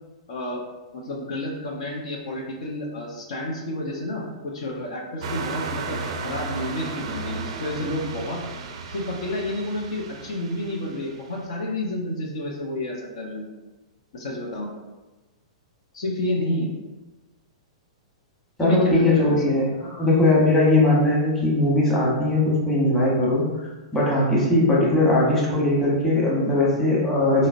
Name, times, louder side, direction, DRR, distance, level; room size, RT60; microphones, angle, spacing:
voice 1, 0.3-0.6 0.9-6.0 6.2-8.4 8.9-13.5 14.1-14.7 15.9-16.7 18.6-19.4 22.8-23.0, left 1 dB, 70° left, -1 dB, 0.6 m, -30 dB
sound 1, 5.2-11.3, right 4 dB, 65° right, 0.4 m, -34 dB
voice 2, 18.6-23.4 23.9-27.5, left 1 dB, 10° left, -6 dB, 1.0 m, -20 dB
3.8 x 2.0 x 2.5 m, 1.1 s
hypercardioid pair, 120°, 3 cm